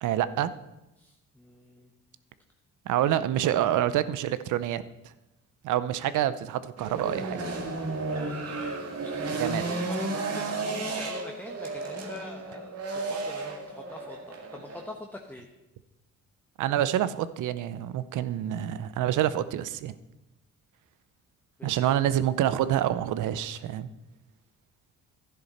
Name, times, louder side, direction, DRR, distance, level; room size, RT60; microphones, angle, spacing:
voice 1, 0.0-0.5 2.9-4.8 5.6-7.4 9.3-9.6 16.6-19.9 21.6-23.9, right 11 dB, 80° right, 15 dB, 0.7 m, -27 dB
voice 2, 1.0-1.9 8.1-15.5 21.6-22.0, left 1 dB, 5° left, 2 dB, 1.1 m, -45 dB
sound 1, 6.8-14.8, right 3 dB, 55° right, 2.1 m, -33 dB
12.0 x 10.5 x 4.3 m, 0.96 s
cardioid pair, 90°, 30 cm